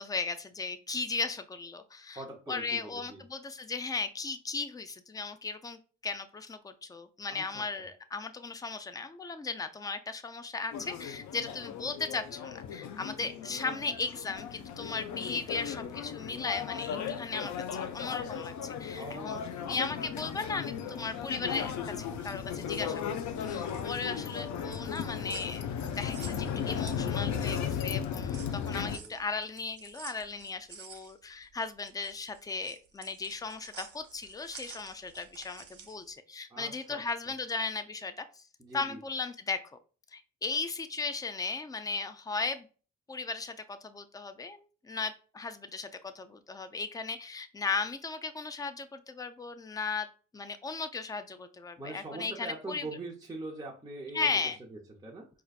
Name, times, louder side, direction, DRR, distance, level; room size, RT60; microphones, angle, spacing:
voice 1, 0.0-2.2 2.5-19.4 19.7-25.6 25.9-38.4 38.7-39.6 40.1-42.7 43.1-50.1 50.3-52.8 54.1-54.6, left 4 dB, 15° left, 10 dB, 0.3 m, -36 dB
voice 2, 2.1-3.2 7.3-7.9 18.9-19.7 28.9-29.1 36.5-37.0 38.6-39.0 51.8-54.3 54.7-55.3, right 2 dB, 10° right, -4 dB, 0.7 m, -43 dB
sound 1, 10.7-29.0, left 7 dB, 70° left, 0.6 m, -36 dB
sound 2, 23.6-27.6 27.9-36.1, right 6 dB, 50° right, 0.9 m, -50 dB
4.4 x 2.5 x 2.4 m, 0.37 s
cardioid pair, 90°, 30 cm